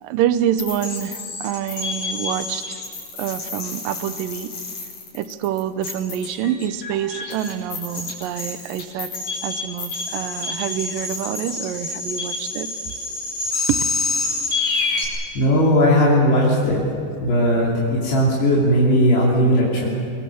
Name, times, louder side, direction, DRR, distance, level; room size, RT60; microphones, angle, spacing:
voice 1, 0.0-2.8 3.2-4.5 5.1-9.1 9.4-12.7, right 10 dB, 80° right, 12 dB, 2.0 m, -26 dB
sound 1, 0.6-15.1, left 3 dB, 50° left, 6.5 m, -28 dB
voice 2, 15.4-16.8 17.2-19.9, equal, 70° left, -6 dB, 5.2 m, -17 dB
24.5 x 24.5 x 7.1 m, 2.5 s
omnidirectional pair, 5.0 m